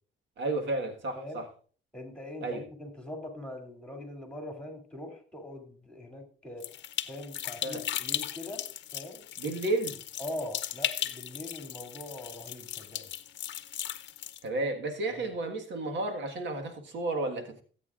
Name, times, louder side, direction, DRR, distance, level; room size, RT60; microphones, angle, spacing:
voice 1, 0.4-1.5 2.4-2.6 7.6-7.8 9.4-10.0 14.4-17.6, right 2 dB, 65° right, 5 dB, 1.6 m, -32 dB
voice 2, 1.9-6.7 7.1-8.6 8.9-9.2 10.2-13.1 15.1-15.3, left 1 dB, 5° left, 4 dB, 2.8 m, -42 dB
sound 1, 6.6-14.4, left 11 dB, 65° left, 0.7 m, -37 dB
17.5 x 8.4 x 2.5 m, 0.41 s
cardioid pair, 90°, 20 cm